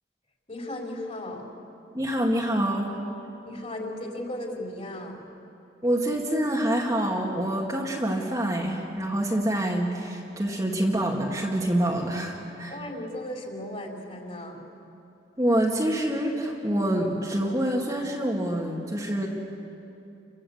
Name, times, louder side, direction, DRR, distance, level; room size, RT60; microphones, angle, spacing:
voice 1, 0.5-1.4 3.4-5.2 12.7-14.6, left 1 dB, 35° left, -1 dB, 4.4 m, -36 dB
voice 2, 1.9-3.0 5.8-12.8 15.4-19.3, right 1 dB, 20° right, -2 dB, 2.1 m, -26 dB
30.0 x 23.5 x 8.1 m, 2.8 s
head